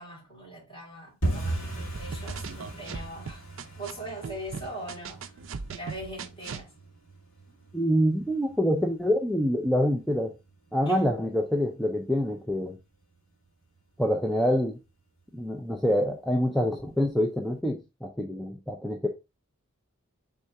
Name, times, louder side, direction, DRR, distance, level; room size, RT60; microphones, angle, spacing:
voice 1, 0.0-5.2 5.7-6.7 7.5-7.6 10.9-11.0, right 1 dB, 25° left, 2.4 m, -41 dB
sound 1, 1.2-11.9 12.2-12.9 13.1-13.5 13.7-14.1 14.4-14.5 15.0-15.5 15.9-16.0 16.5-16.6, right 2 dB, 65° left, 2.1 m, -38 dB
sound 2, 1.9-3.9 4.2-6.7, right 5 dB, 60° right, 0.4 m, -38 dB
voice 2, 7.7-10.3 10.7-12.8 14.0-14.8 15.3-19.1, equal, ahead, 0.4 m, -26 dB
4.2 x 3.6 x 3.3 m
head